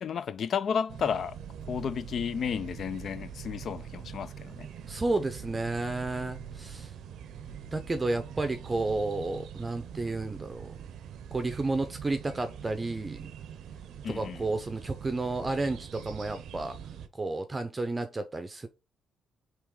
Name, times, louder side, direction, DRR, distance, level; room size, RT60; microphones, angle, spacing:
voice 1, 0.0-1.4 1.7-4.7 14.0-14.4, left 7 dB, 60° left, 0.4 m, -32 dB
sound 1, 0.9-17.1, right 8 dB, 75° right, 0.6 m, -43 dB
voice 2, 4.9-6.9 7.7-10.7 11.3-13.3 14.1-16.8 17.1-18.7, right 2 dB, 20° right, 0.6 m, -31 dB
3.7 x 3.1 x 4.7 m
cardioid pair, 90°, 0 cm